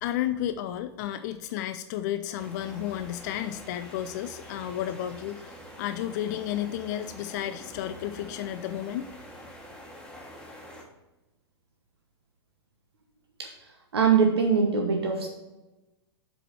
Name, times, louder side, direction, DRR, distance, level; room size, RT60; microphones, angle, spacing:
voice 1, 0.0-9.1, left 11 dB, 40° left, 10 dB, 0.4 m, -32 dB
sound 1, 2.4-10.8, equal, 5° left, 1.4 m, -46 dB
voice 2, 13.9-15.3, right 6 dB, 65° right, 2 dB, 1.1 m, -22 dB
7.7 x 5.0 x 4.8 m, 1.0 s
figure-of-eight pair, 100°, 14 cm